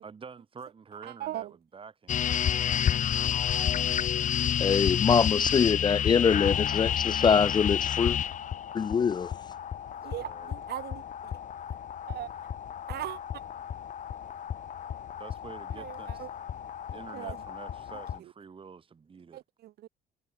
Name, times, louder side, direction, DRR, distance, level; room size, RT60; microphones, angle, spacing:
voice 1, 0.0-2.5 9.9-10.5 15.2-16.3 16.9-19.4, right 5 dB, 30° right, 4.4 m, -48 dB
voice 2, 1.0-1.5 10.0-11.0 12.1-12.3 12.9-13.2 15.8-16.3 17.1-17.4 18.2-18.3 19.3-19.9, right 14 dB, 70° right, 3.5 m, -38 dB
sound 1, 2.1-18.2, left 9 dB, 50° left, 2.1 m, -31 dB
voice 3, 4.6-8.2 8.7-9.3, left 6 dB, 25° left, 0.3 m, -24 dB
cardioid pair, 110°, 17 cm